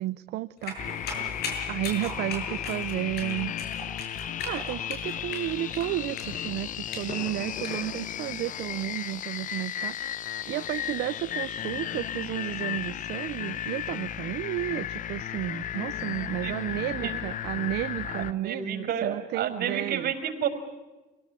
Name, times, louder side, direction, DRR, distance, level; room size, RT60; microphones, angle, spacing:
voice 1, 0.0-3.5 4.1-20.1, right 16 dB, 80° right, 13 dB, 0.7 m, -33 dB
sound 1, 0.6-7.8, left 3 dB, 75° left, 7.6 m, -38 dB
sound 2, 0.8-18.3, left 10 dB, 50° left, 0.8 m, -34 dB
voice 2, 16.4-17.2 18.1-20.5, right 8 dB, 65° right, 6 dB, 5.3 m, -31 dB
27.0 x 18.0 x 8.4 m, 1.1 s
cardioid pair, 110°, 17 cm